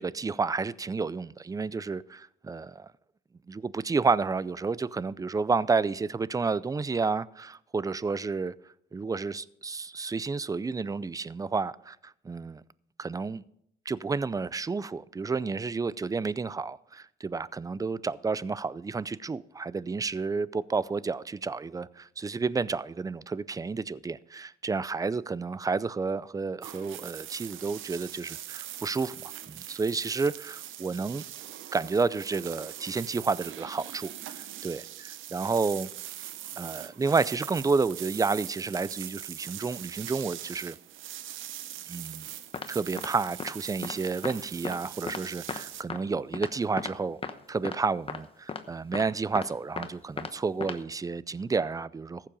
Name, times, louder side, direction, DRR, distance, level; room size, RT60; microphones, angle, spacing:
voice 1, 0.0-2.9 3.5-8.5 8.9-12.6 13.0-13.4 13.9-31.3 31.7-35.9 36.6-40.8 41.9-42.3 42.7-47.2 47.5-52.3, right 4 dB, 15° right, 0.4 m, -30 dB
sound 1, 26.6-45.8, right 12 dB, 80° right, 0.7 m, -42 dB
sound 2, 42.5-42.7 43.0-43.1 43.4-43.5 43.8-43.9 44.2-44.3 44.6-44.8 45.1-45.2 45.5-45.6 45.9-46.0 46.3-46.5 46.8-46.9 47.2-47.3 47.6-47.8 48.1-48.2 48.5-48.6 48.9-49.0 49.4-49.9 50.2-50.3 50.6-50.8, left 4 dB, 30° left, 1.0 m, -35 dB
14.5 x 7.5 x 5.3 m
cardioid pair, 90°, 20 cm